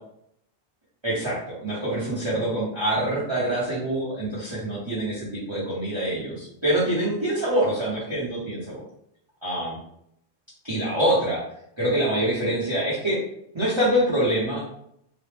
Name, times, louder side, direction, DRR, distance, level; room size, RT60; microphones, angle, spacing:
voice 1, 1.0-8.8 9.4-9.8 10.6-11.4 11.8-13.2 13.5-14.6, right 1 dB, 25° right, -9 dB, 0.8 m, -25 dB
3.0 x 2.0 x 3.3 m, 0.72 s
omnidirectional pair, 1.1 m